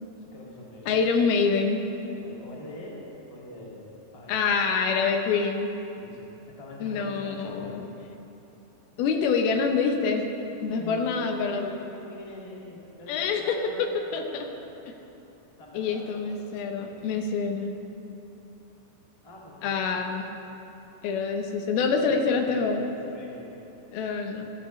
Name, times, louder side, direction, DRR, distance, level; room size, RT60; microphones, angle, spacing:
voice 1, 0.3-1.1 2.2-3.0 3.3-3.8 4.1-4.4 6.0-7.8 10.7-11.2 11.5-14.7 15.6-16.3 16.6-17.0 19.2-20.2 22.0-23.7, left 1 dB, 25° left, -5 dB, 0.7 m, -44 dB
voice 2, 0.9-1.8 4.3-5.7 6.8-7.8 9.0-10.3 10.6-11.7 13.1-13.9 14.1-14.2 15.7-17.7 19.6-20.3 21.0-22.8 23.9-24.5, left 5 dB, 80° left, 4 dB, 2.6 m, -26 dB
15.0 x 14.5 x 3.1 m, 3.0 s
omnidirectional pair, 4.5 m